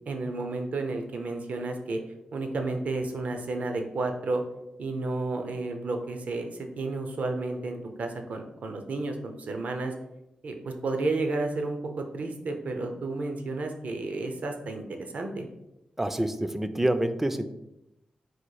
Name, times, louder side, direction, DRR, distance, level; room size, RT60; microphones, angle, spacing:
voice 1, 0.1-2.0 2.3-4.4 4.8-9.9 10.4-14.8 15.1-15.5, right 3 dB, 65° right, 5 dB, 0.6 m, -31 dB
voice 2, 16.0-17.5, right 1 dB, 10° right, 10 dB, 0.3 m, -27 dB
4.1 x 2.4 x 4.6 m, 0.90 s
wide cardioid pair, 110°, 3 cm